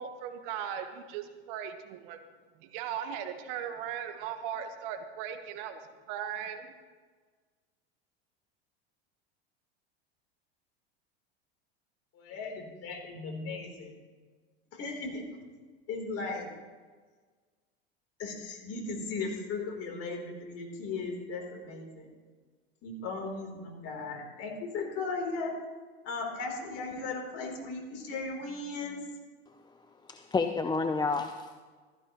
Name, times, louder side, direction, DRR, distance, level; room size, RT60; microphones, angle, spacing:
voice 1, 0.0-2.2 2.6-5.8 6.1-6.7, right 9 dB, 65° right, 7 dB, 1.3 m, -38 dB
voice 2, 12.1-13.9 14.7-15.2 15.9-16.5 18.2-22.1 22.8-25.5 26.0-29.0, left 3 dB, 45° left, 1 dB, 3.6 m, -37 dB
voice 3, 30.1-31.5, left 4 dB, 15° left, 7 dB, 0.5 m, -29 dB
15.0 x 13.5 x 3.1 m, 1.5 s
hypercardioid pair, 95°, 32 cm